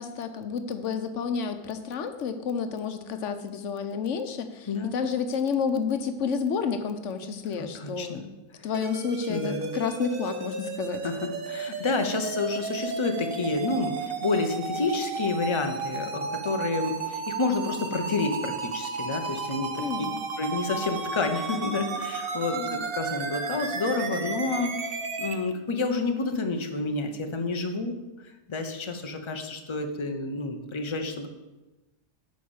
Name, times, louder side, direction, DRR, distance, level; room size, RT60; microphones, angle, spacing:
voice 1, 0.0-8.3 8.6-11.0 19.8-20.2 22.5-22.9, left 6 dB, 90° left, 9 dB, 1.1 m, -30 dB
voice 2, 4.7-5.0 7.6-8.2 8.6-8.7 9.3-9.8 11.0-19.8 20.4-24.9 25.2-28.0 28.5-31.3, left 3 dB, 25° left, 5 dB, 0.8 m, -29 dB
sound 1, 8.7-25.3, right 4 dB, 55° right, 1.1 m, -33 dB
9.3 x 5.2 x 7.1 m, 1.1 s
omnidirectional pair, 1.2 m